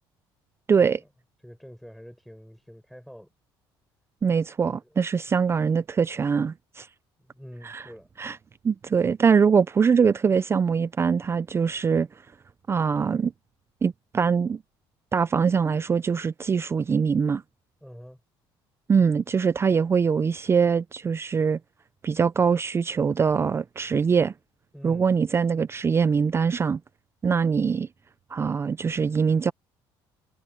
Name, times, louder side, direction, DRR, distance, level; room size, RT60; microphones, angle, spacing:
voice 1, 0.7-1.0 4.2-6.9 7.6-7.9 8.2-8.4 8.6-12.1 12.7-13.3 13.8-14.6 15.1-17.4 18.9-21.6 22.0-24.3 24.8-26.8 27.2-27.9 28.3-29.5, right 6 dB, 25° right, 0.5 m, -23 dB
voice 2, 1.4-3.3 4.8-4.9 7.2-8.1 17.8-18.2 24.7-25.1, equal, ahead, 7.4 m, -45 dB
cardioid pair, 105°, 9 cm